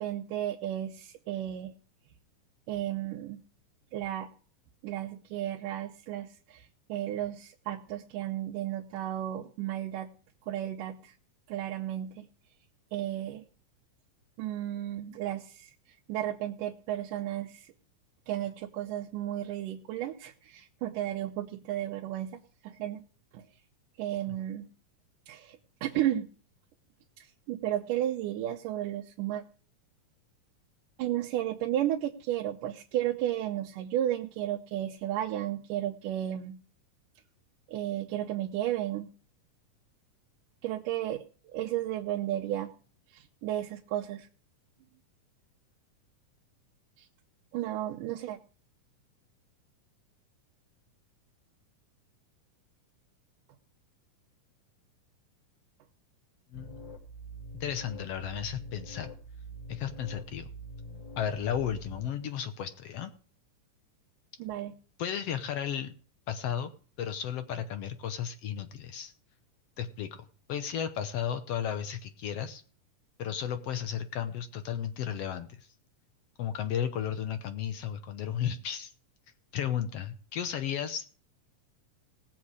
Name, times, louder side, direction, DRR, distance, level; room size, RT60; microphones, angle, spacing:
voice 1, 0.0-1.7 2.7-3.4 3.9-4.3 4.8-10.1 10.5-11.2 11.5-12.3 12.9-13.4 14.4-15.7 16.1-17.7 18.3-23.0 23.3-23.4 24.0-24.7 25.3-26.3 27.2-29.4 31.0-36.6 37.7-39.1 40.6-41.2 41.5-42.7 43.1-44.3 47.0-47.1 47.5-48.4 64.4-64.7, right 12 dB, 80° right, 1 dB, 2.4 m, -33 dB
voice 2, 56.5-56.9 57.6-59.1 59.7-60.5 61.2-63.1 65.0-65.9 66.3-66.7 67.0-69.1 69.8-72.6 73.2-75.7 76.4-78.9 79.5-81.0, left 9 dB, 70° left, 9 dB, 1.5 m, -34 dB
sound 1, 56.5-62.1, right 1 dB, 10° left, 3.1 m, -45 dB
18.5 x 7.4 x 4.9 m, 0.41 s
omnidirectional pair, 3.8 m